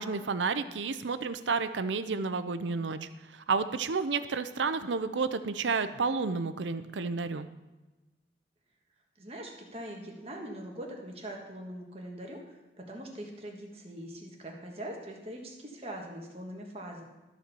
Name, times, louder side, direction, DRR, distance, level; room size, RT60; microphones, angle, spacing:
voice 1, 0.0-7.5, right 4 dB, 90° right, 12 dB, 0.6 m, -31 dB
voice 2, 9.2-17.0, right 1 dB, 35° right, 0 dB, 1.5 m, -42 dB
13.0 x 4.4 x 6.9 m, 1.1 s
head